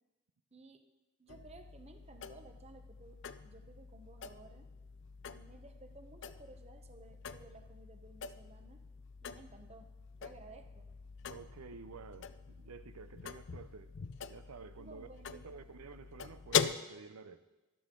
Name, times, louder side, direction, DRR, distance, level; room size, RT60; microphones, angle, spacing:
voice 1, 0.5-0.9 1.2-4.7 5.3-8.8 9.2-10.9 14.8-15.7, right 3 dB, 30° right, 6 dB, 0.8 m, -56 dB
sound 1, 1.3-16.7, left 7 dB, 55° left, 0.4 m, -42 dB
voice 2, 11.3-13.9 14.3-17.4, right 5 dB, 85° right, 11 dB, 0.6 m, -51 dB
13.5 x 11.5 x 3.8 m, 1.1 s
head